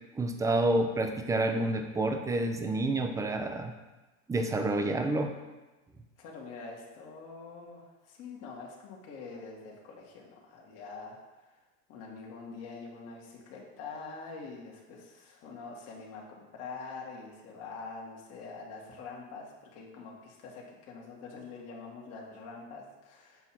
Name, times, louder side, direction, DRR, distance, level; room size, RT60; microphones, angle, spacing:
voice 1, 0.1-3.7 4.3-5.3, right 2 dB, 10° right, 5 dB, 0.5 m, -29 dB
voice 2, 6.2-11.2 11.4-11.6 11.9-23.5, left 4 dB, 50° left, -2 dB, 1.6 m, -45 dB
7.1 x 2.8 x 5.9 m, 1.1 s
supercardioid pair, 120°, 33 cm